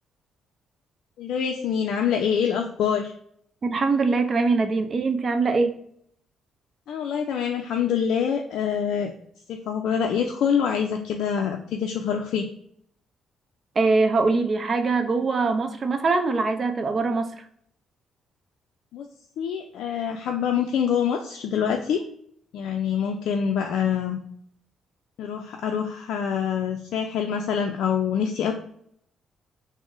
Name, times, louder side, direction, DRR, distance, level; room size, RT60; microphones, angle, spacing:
voice 1, 1.2-3.1 6.9-9.1 9.5-12.5 18.9-19.1 19.4-22.0 22.5-24.2 25.2-28.5, left 7 dB, 80° left, 3 dB, 0.3 m, -25 dB
voice 2, 3.6-5.8 13.8-17.3, right 3 dB, 40° right, 7 dB, 0.5 m, -22 dB
3.7 x 2.0 x 3.6 m, 0.67 s
cardioid pair, 90°, 0 cm